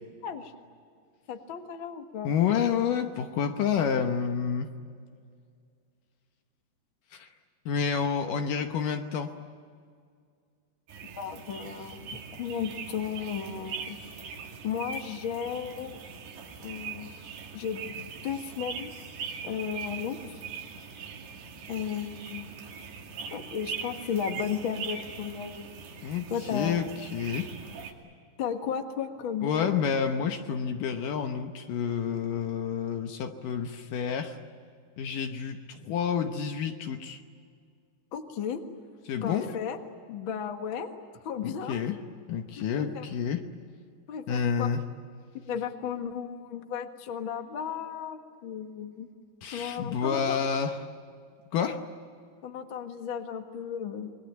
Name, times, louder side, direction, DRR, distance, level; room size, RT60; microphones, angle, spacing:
voice 1, 1.3-2.3 11.2-14.0 14.6-16.0 16.6-17.1 17.5-18.9 19.4-20.2 21.7-22.5 23.3-25.7 26.3-26.8 28.4-29.7 38.1-38.6 39.2-39.8 40.1-40.9 41.2-41.8 42.6-43.0 44.1-44.7 45.3-49.1 49.5-50.4 52.4-54.1, left 7 dB, 50° left, 6 dB, 1.5 m, -34 dB
voice 2, 2.2-4.7 7.1-7.3 7.7-9.3 26.0-27.5 29.4-34.4 35.0-37.2 39.1-39.5 41.4-43.5 44.3-44.8 49.4-50.9 51.5-51.9, left 7 dB, 70° left, 6 dB, 2.3 m, -29 dB
sound 1, 10.9-27.9, right 6 dB, 85° right, 4.5 m, -41 dB
28.0 x 22.0 x 9.0 m, 2.2 s
omnidirectional pair, 4.6 m